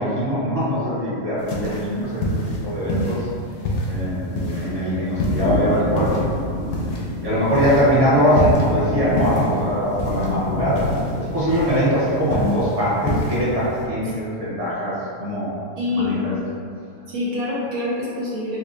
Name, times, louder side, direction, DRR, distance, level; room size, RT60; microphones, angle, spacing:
voice 1, 0.0-2.3 2.6-3.3 3.9-6.1 7.2-10.8 11.2-14.9 15.2-15.5 15.9-16.3, equal, 35° right, -9 dB, 0.6 m, -22 dB
sound 1, 1.4-13.9, left 1 dB, 90° left, 1.1 m, -28 dB
sound 2, 5.3-12.1, left 1 dB, 70° left, 0.7 m, -28 dB
voice 2, 15.8-16.1 17.1-18.6, left 2 dB, 75° right, -5 dB, 1.1 m, -25 dB
4.0 x 2.5 x 2.5 m, 2.4 s
omnidirectional pair, 1.6 m